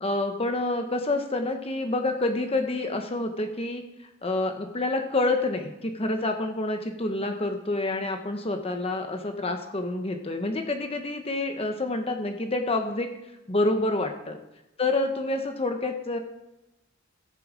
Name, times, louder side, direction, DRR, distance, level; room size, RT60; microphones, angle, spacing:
voice 1, 0.0-3.8 4.2-13.1 13.5-14.4 14.8-16.2, left 2 dB, 30° left, 5 dB, 0.9 m, -28 dB
17.5 x 6.9 x 5.0 m, 0.95 s
head